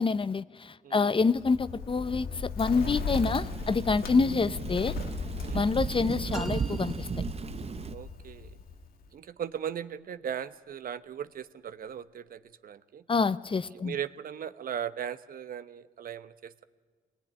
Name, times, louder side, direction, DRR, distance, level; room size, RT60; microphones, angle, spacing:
voice 1, 0.0-5.0 5.5-7.1 13.1-14.0, left 4 dB, 35° left, 15 dB, 0.8 m, -27 dB
Bird, 1.3-9.1, left 5 dB, 90° left, 1.4 m, -37 dB
Thunder / Rain, 2.8-7.9, right 5 dB, 40° right, 0.8 m, -35 dB
sound 1, 6.3-8.0, right 2 dB, 5° right, 2.4 m, -44 dB
voice 2, 7.9-8.5 9.1-13.0 13.8-16.6, right 9 dB, 70° right, 13 dB, 0.9 m, -38 dB
22.5 x 19.0 x 9.9 m, 1.5 s
cardioid pair, 65°, 15 cm